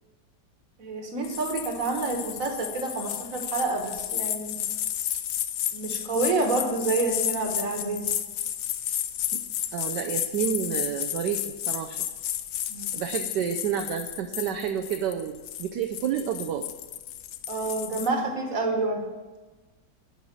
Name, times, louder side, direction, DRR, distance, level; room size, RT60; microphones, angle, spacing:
voice 1, 0.8-4.6 5.7-8.1 12.7-12.9 17.5-19.0, right 3 dB, 50° right, 3 dB, 1.8 m, -28 dB
sound 1, 1.2-18.1, left 11 dB, 75° left, 0.8 m, -32 dB
voice 2, 9.7-12.1 12.9-16.7, right 9 dB, 70° right, 5 dB, 1.2 m, -30 dB
12.0 x 5.6 x 6.1 m, 1.3 s
omnidirectional pair, 2.0 m